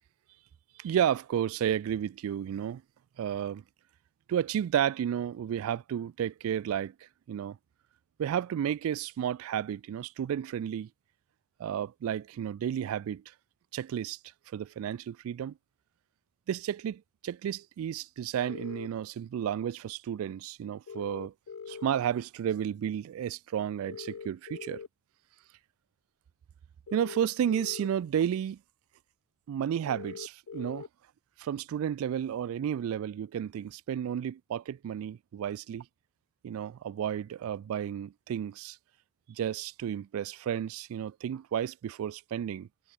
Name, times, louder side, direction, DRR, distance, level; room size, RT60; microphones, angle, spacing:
voice 1, 0.8-2.8 3.2-3.6 4.3-6.9 7.3-7.6 8.2-10.9 11.6-13.2 13.7-14.2 14.5-15.5 16.5-21.3 21.7-24.8 26.9-28.6 29.5-30.9 31.4-35.9 36.4-38.8 39.3-42.7, right 9 dB, 90° right, 0.3 m, -32 dB
sound 1, 18.5-18.9 20.9-21.9 23.9-24.9 26.9-27.9 29.9-30.9, left 6 dB, 85° left, 0.5 m, -42 dB
head